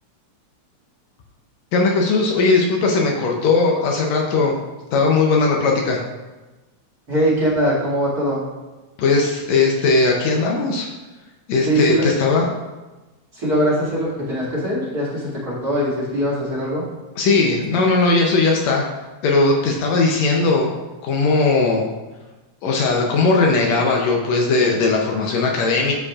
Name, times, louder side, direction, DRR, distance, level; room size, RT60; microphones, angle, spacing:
voice 1, 1.7-4.6 4.9-6.0 9.0-10.9 11.5-12.5 17.2-18.9 19.2-20.8 21.0-21.8 22.6-25.9, left 3 dB, 75° left, 1 dB, 1.9 m, -18 dB
voice 2, 7.1-8.4 11.7-12.1 13.3-16.8, equal, 35° right, -8 dB, 2.5 m, -21 dB
13.0 x 5.1 x 2.4 m, 1.2 s
omnidirectional pair, 3.4 m